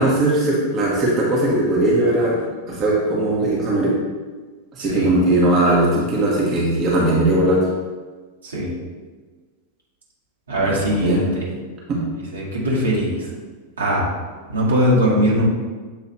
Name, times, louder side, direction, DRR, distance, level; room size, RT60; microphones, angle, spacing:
voice 1, 0.0-2.3 2.7-3.9 4.7-7.6 10.6-11.2 11.9-12.0, right 1 dB, 30° right, -5 dB, 1.4 m, -19 dB
voice 2, 4.8-5.1 8.4-8.7 10.5-11.5 12.3-13.1 13.8-14.1 14.5-15.4, equal, 70° right, -5 dB, 1.9 m, -20 dB
7.5 x 3.2 x 4.3 m, 1.4 s
figure-of-eight pair, 90°, 0 cm